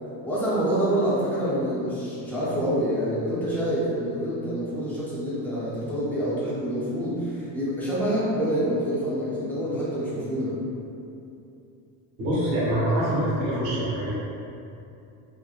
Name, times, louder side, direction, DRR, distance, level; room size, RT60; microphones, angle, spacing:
voice 1, 0.2-10.5, equal, 5° left, -10 dB, 0.5 m, -27 dB
voice 2, 12.2-14.2, right 1 dB, 75° right, -7 dB, 1.1 m, -25 dB
3.0 x 2.1 x 2.4 m, 2.7 s
cardioid pair, 150°, 39 cm